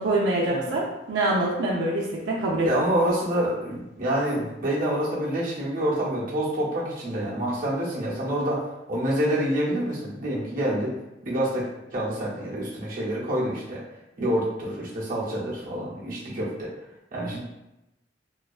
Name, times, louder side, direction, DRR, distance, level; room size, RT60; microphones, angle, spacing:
voice 1, 0.0-2.9, right 1 dB, 85° right, -4 dB, 0.5 m, -25 dB
voice 2, 2.6-8.6 8.9-10.9 11.2-13.8 14.2-16.7 17.1-17.4, right 1 dB, 50° right, -6 dB, 0.7 m, -27 dB
2.5 x 2.2 x 2.3 m, 0.92 s
head